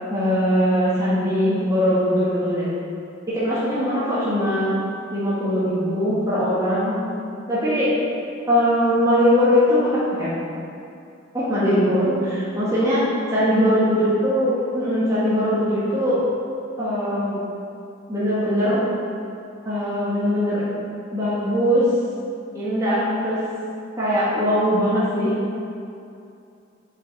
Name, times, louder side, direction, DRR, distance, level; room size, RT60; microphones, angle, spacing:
voice 1, 0.1-2.7 3.3-4.7 5.1-6.9 7.5-7.9 8.5-10.3 11.3-13.0 13.3-16.2 16.8-17.4 18.1-18.8 19.7-20.6 21.1-21.8 22.5-23.4 24.0-25.4, equal, 15° right, -12 dB, 1.8 m, -21 dB
8.6 x 5.6 x 4.2 m, 2.6 s
head